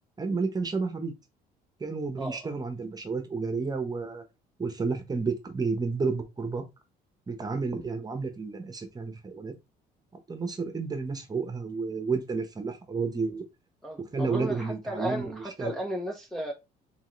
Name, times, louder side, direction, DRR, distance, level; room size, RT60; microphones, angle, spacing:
voice 1, 0.2-1.1 1.8-4.2 4.6-6.6 7.3-9.5 10.3-13.4 14.1-15.7, right 4 dB, 25° right, 1.1 m, -31 dB
voice 2, 13.8-16.5, right 1 dB, ahead, 0.8 m, -34 dB
3.6 x 3.6 x 3.2 m
cardioid pair, 110°, 17 cm